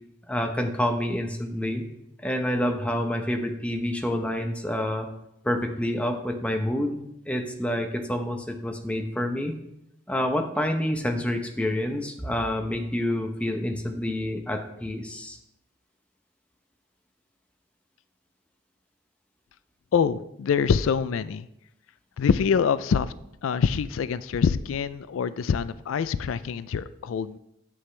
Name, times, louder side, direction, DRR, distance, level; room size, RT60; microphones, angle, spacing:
voice 1, 0.3-1.9 2.2-5.1 5.4-9.5 10.1-15.4, left 1 dB, 5° left, 4 dB, 0.7 m, -28 dB
voice 2, 19.9-21.5 22.2-23.1 23.4-27.4, left 6 dB, 90° left, 16 dB, 0.4 m, -25 dB
9.8 x 7.7 x 3.3 m, 0.81 s
head